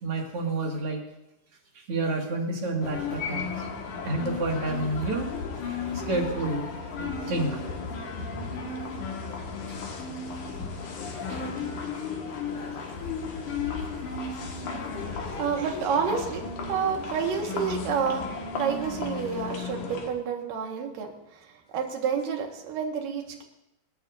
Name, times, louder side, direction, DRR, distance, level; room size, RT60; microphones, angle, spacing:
voice 1, 0.0-1.0 1.9-3.7 4.0-5.3 6.1-6.7 7.0-7.5 11.3-11.5, right 2 dB, 45° right, 0 dB, 2.6 m, -29 dB
sound 1, 2.8-20.1, left 4 dB, 60° left, 2.9 m, -34 dB
voice 2, 15.4-18.3 18.6-23.4, right 6 dB, 65° right, 3 dB, 3.1 m, -29 dB
26.0 x 13.5 x 2.7 m, 0.90 s
omnidirectional pair, 4.3 m